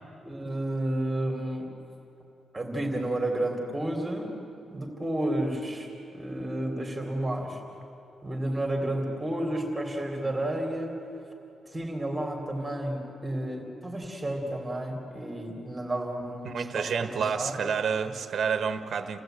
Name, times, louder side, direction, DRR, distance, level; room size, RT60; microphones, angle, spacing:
voice 1, 0.2-1.7 2.5-4.3 4.7-7.6 8.2-11.0 11.7-17.6 18.1-18.2, right 1 dB, 10° right, 0 dB, 3.1 m, -31 dB
voice 2, 16.4-19.2, right 6 dB, 45° right, 9 dB, 1.3 m, -29 dB
28.5 x 17.0 x 9.1 m, 3.0 s
wide cardioid pair, 165°, 0 cm